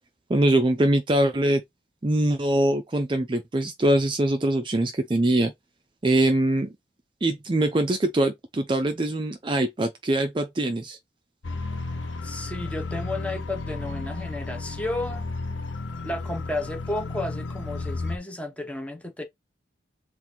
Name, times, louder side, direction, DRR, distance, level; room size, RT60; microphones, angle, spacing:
voice 1, 0.3-1.6 2.0-5.5 6.0-6.7 7.2-11.0, right 1 dB, 25° right, 0.4 m, -23 dB
sound 1, 11.4-18.2, left 3 dB, 90° left, 0.7 m, -33 dB
voice 2, 12.2-15.3 16.0-19.2, left 1 dB, 5° left, 0.8 m, -32 dB
3.7 x 2.5 x 4.3 m
head